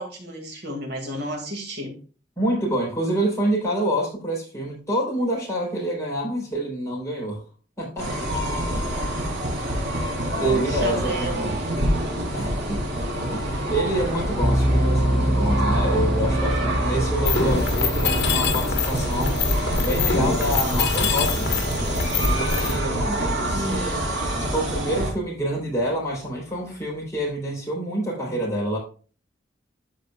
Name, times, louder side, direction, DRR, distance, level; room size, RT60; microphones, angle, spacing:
voice 1, 0.0-2.0 9.6-11.5 23.0-24.0, equal, 65° right, 1 dB, 2.3 m, -33 dB
voice 2, 2.4-7.4 7.8-8.1 8.7-9.3 10.4-11.6 12.3-12.8 13.3-19.4 19.8-21.5 22.2-24.0 24.4-28.8, right 1 dB, 15° left, -4 dB, 3.8 m, -27 dB
sound 1, 8.0-25.1, right 1 dB, 85° right, 3.5 m, -27 dB
sound 2, 14.4-23.3, right 1 dB, 5° right, 0.6 m, -27 dB
Mechanisms, 17.3-22.7, left 4 dB, 65° left, 1.5 m, -24 dB
13.0 x 4.6 x 2.4 m, 0.37 s
head